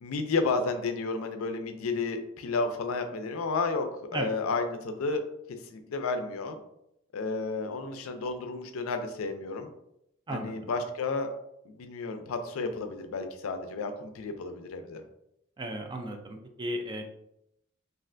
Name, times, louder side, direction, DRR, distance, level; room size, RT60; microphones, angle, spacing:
voice 1, 0.0-3.9 4.1-5.2 5.6-6.6 7.1-9.7 10.3-11.3 11.7-15.0, left 3 dB, 75° left, 7 dB, 0.4 m, -32 dB
voice 2, 10.3-10.6 15.6-17.0, right 1 dB, 20° right, 3 dB, 0.3 m, -35 dB
3.2 x 2.4 x 2.5 m, 0.79 s
head